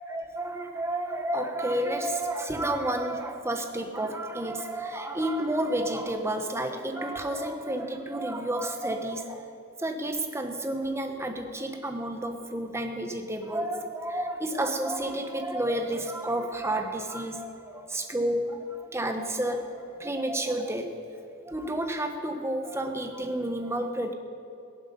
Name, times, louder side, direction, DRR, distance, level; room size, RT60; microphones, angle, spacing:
voice 1, 0.0-9.4 9.8-20.9 21.5-24.1, right 1 dB, 15° right, 5 dB, 1.1 m, -30 dB
18.5 x 11.0 x 5.4 m, 2.6 s
head